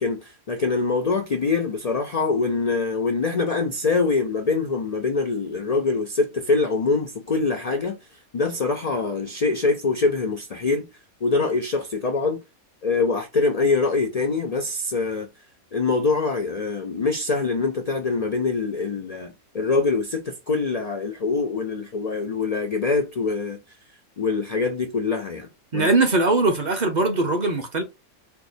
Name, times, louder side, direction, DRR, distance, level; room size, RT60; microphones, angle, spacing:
voice 1, 0.0-8.0 8.3-10.9 11.2-12.4 12.8-15.3 15.7-23.6 24.2-25.9, left 4 dB, 80° left, 0.3 m, -24 dB
voice 2, 25.7-27.8, right 3 dB, 45° right, 0.6 m, -21 dB
4.5 x 2.1 x 2.5 m
omnidirectional pair, 1.5 m